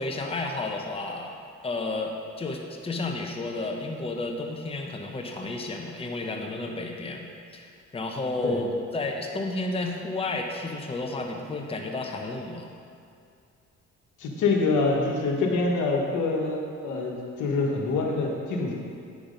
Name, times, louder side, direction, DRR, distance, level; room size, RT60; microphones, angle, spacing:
voice 1, 0.0-1.4 1.6-7.3 7.5-12.7, left 2 dB, 20° left, 2 dB, 0.8 m, -32 dB
voice 2, 14.2-18.7, left 3 dB, 80° left, 0 dB, 1.4 m, -26 dB
8.7 x 6.1 x 5.2 m, 2.4 s
cardioid pair, 90°, 30 cm